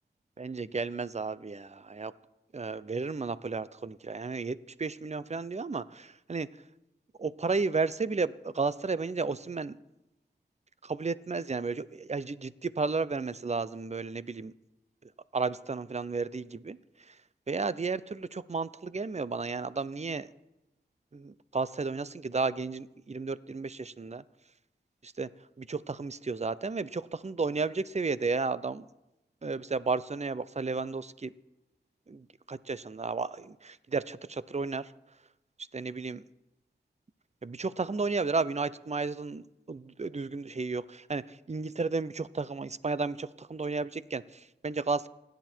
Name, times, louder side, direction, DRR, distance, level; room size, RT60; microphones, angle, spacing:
voice 1, 0.4-2.1 2.5-6.5 7.2-9.7 10.8-14.5 15.3-16.8 17.5-20.3 21.1-24.2 25.0-25.3 25.6-28.9 29.4-31.3 32.1-34.9 35.7-36.2 37.4-45.1, right 4 dB, 40° right, 17 dB, 0.7 m, -33 dB
28.0 x 10.5 x 4.5 m, 0.93 s
cardioid pair, 45°, 18 cm